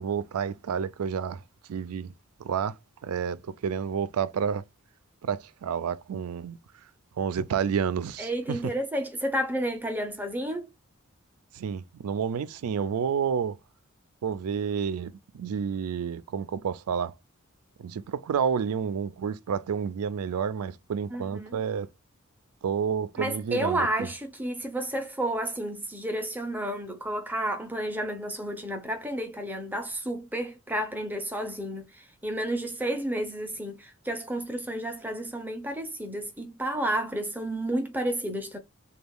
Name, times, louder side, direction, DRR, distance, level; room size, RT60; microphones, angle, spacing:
voice 1, 0.0-1.4 1.7-2.1 2.4-4.6 5.2-6.6 7.2-8.7 11.5-13.6 14.2-17.2 17.8-21.9 22.6-24.1, right 7 dB, 90° right, 0.4 m, -30 dB
voice 2, 8.2-10.6 21.1-21.5 23.2-38.6, right 1 dB, 10° right, 0.6 m, -31 dB
3.4 x 2.3 x 3.5 m
head